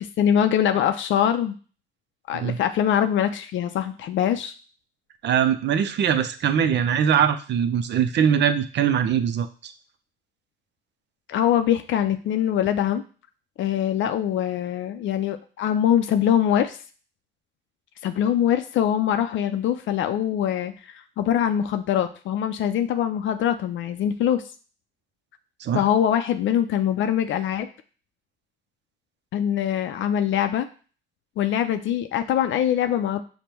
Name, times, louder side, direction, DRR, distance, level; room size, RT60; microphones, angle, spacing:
voice 1, 0.0-1.6 2.3-4.5 11.3-13.0 13.6-16.8 18.0-24.4 25.7-27.7 29.3-30.7 31.4-33.2, left 10 dB, 75° left, 8 dB, 0.4 m, -23 dB
voice 2, 5.2-9.7 25.6-25.8, right 8 dB, 60° right, 10 dB, 0.6 m, -22 dB
5.1 x 2.2 x 4.4 m, 0.38 s
cardioid pair, 90°, 20 cm